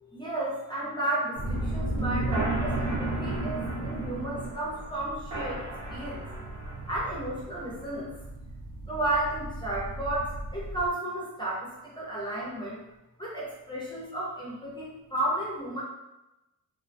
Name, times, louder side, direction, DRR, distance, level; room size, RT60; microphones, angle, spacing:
voice 1, 0.1-6.2 6.9-8.1 8.9-11.7 12.0-12.8 13.2-15.8, right 1 dB, 15° left, -6 dB, 0.3 m, -33 dB
sound 1, 1.4-10.9, right 2 dB, 65° right, 0.8 m, -33 dB
2.3 x 2.2 x 2.4 m, 0.97 s
wide cardioid pair, 180°, 34 cm